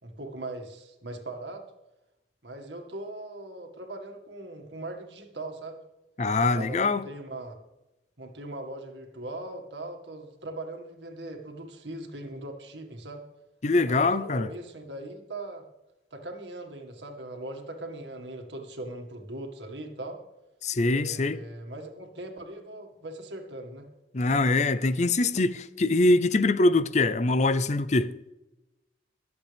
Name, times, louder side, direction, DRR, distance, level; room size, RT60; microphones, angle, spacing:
voice 1, 0.0-1.6 2.4-5.8 6.5-7.6 8.2-13.2 13.9-15.6 16.1-20.2 20.8-23.9, right 2 dB, 85° right, 2.0 m, -40 dB
voice 2, 6.2-7.0 13.6-14.5 20.6-21.4 24.1-28.1, left 2 dB, 40° left, 0.6 m, -23 dB
22.5 x 8.0 x 3.5 m
head